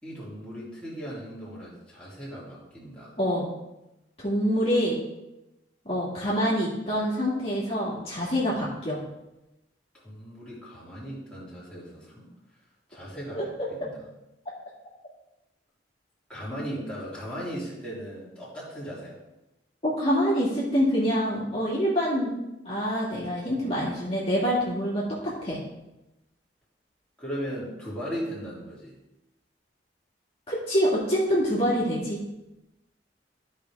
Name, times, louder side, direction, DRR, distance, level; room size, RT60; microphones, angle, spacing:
voice 1, 0.0-3.1 9.9-12.3 12.9-14.0 16.3-19.2 27.2-29.0, equal, 5° left, -8 dB, 3.0 m, -37 dB
voice 2, 3.2-3.5 4.2-5.0 5.9-9.0 13.3-13.4 19.8-22.3 22.6-25.6 30.5-32.2, equal, 35° left, -7 dB, 2.2 m, -26 dB
13.5 x 5.3 x 3.6 m, 0.93 s
head